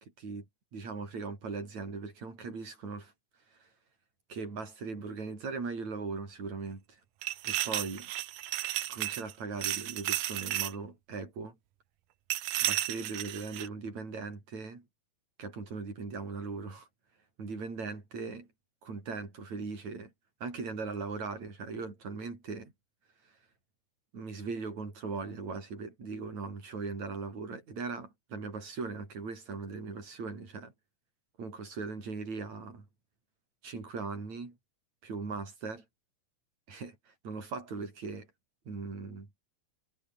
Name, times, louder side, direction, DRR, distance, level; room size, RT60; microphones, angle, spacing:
voice 1, 0.7-3.1 3.5-3.7 4.3-7.0 7.4-8.1 8.9-11.6 12.6-14.8 15.4-16.9 17.4-18.5 18.8-20.1 20.4-22.7 24.1-30.7 31.4-32.9 33.6-34.6 35.0-35.8 36.7-38.3 38.7-39.3, right 4 dB, 55° right, 7.5 m, -39 dB
sound 1, 7.2-9.3 9.6-10.8 12.3-13.7, right 14 dB, 85° right, 2.7 m, -33 dB
omnidirectional pair, 3.8 m